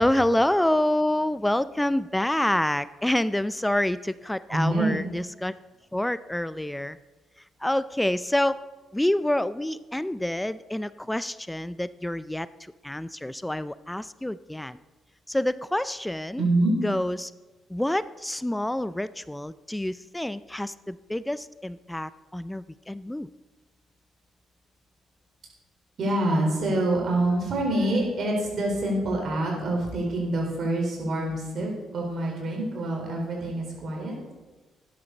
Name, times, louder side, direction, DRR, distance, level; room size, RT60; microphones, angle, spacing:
voice 1, 0.0-5.5 5.9-7.0 7.6-8.6 8.9-14.8 15.3-16.4 16.8-17.3 17.7-23.3, left 1 dB, 10° left, 17 dB, 0.4 m, -27 dB
voice 2, 4.5-5.0 16.4-16.7 26.0-34.1, right 1 dB, 55° right, -1 dB, 4.3 m, -26 dB
12.5 x 11.0 x 4.1 m, 1.2 s
hypercardioid pair, 45°, 0 cm